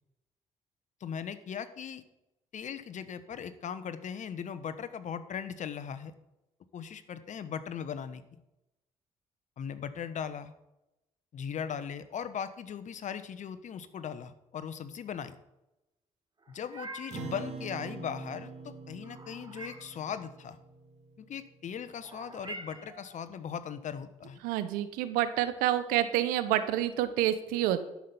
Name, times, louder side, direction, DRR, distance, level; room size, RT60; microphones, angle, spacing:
voice 1, 1.0-2.0 2.5-6.1 6.7-8.2 9.6-10.5 11.3-15.4 16.5-20.6 21.2-24.4, left 7 dB, 60° left, 12 dB, 1.0 m, -39 dB
Meow, 16.4-17.3 19.0-20.0 22.0-23.1, right 2 dB, 30° right, 3.8 m, -45 dB
Acoustic guitar, 17.1-21.8, right 4 dB, 50° right, 2.3 m, -45 dB
voice 2, 24.4-27.8, right 12 dB, 85° right, 12 dB, 0.9 m, -28 dB
12.0 x 5.9 x 7.0 m, 0.94 s
supercardioid pair, 60°, 14 cm